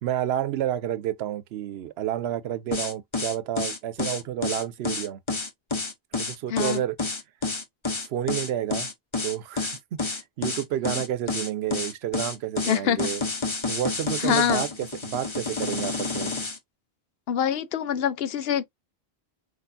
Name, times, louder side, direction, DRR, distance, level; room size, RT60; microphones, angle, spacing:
voice 1, 0.0-5.2 6.1-7.0 8.0-8.9 9.2-13.2 13.7-16.3, right 11 dB, 80° right, 0.8 m, -30 dB
sound 1, 2.7-16.6, left 3 dB, 30° left, 0.9 m, -29 dB
voice 2, 6.5-6.8 12.7-13.1 14.2-14.7 17.3-18.6, left 9 dB, 75° left, 0.8 m, -25 dB
4.7 x 4.2 x 2.6 m
omnidirectional pair, 1.0 m